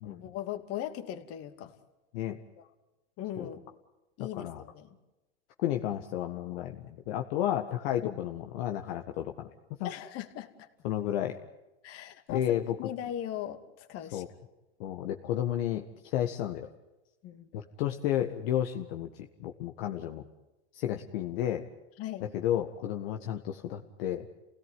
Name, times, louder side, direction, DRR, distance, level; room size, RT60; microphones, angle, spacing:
voice 1, 0.0-1.7 2.6-2.7 3.2-3.6 4.2-5.0 8.0-8.2 9.8-10.7 11.8-14.2 17.2-17.5 22.0-22.3, left 11 dB, 40° left, 8 dB, 2.7 m, -39 dB
voice 2, 5.6-9.5 9.8-9.9 10.8-11.4 12.3-12.8 14.1-14.3 14.8-15.8 16.1-16.7 17.5-20.2 20.7-21.6 22.2-24.3, left 11 dB, 60° left, 4 dB, 1.8 m, -32 dB
28.5 x 18.0 x 9.4 m, 1.0 s
hypercardioid pair, 125°, 35 cm